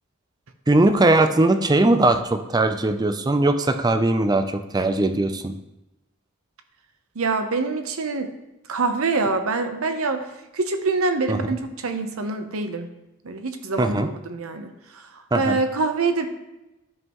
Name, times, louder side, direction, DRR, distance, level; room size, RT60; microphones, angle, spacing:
voice 1, 0.7-5.5 11.3-11.5 13.8-14.1 15.3-15.6, right 2 dB, 20° right, 8 dB, 0.5 m, -20 dB
voice 2, 7.2-8.3 8.7-10.2 10.5-12.9 13.2-16.3, right 3 dB, 85° right, 7 dB, 0.8 m, -25 dB
12.5 x 5.5 x 3.0 m, 0.97 s
head